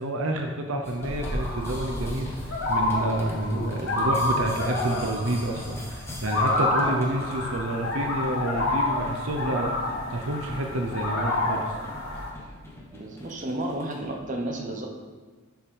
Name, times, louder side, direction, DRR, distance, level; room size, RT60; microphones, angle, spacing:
voice 1, 0.0-9.7 10.1-11.6, right 1 dB, 65° right, 3 dB, 0.7 m, -29 dB
sound 1, 0.8-14.2, left 1 dB, 10° left, 1.2 m, -43 dB
sound 2, 1.0-12.3, left 2 dB, 65° left, 1.9 m, -28 dB
voice 2, 12.9-14.9, right 1 dB, 35° right, 1 dB, 0.9 m, -32 dB
7.0 x 5.8 x 5.1 m, 1.4 s
head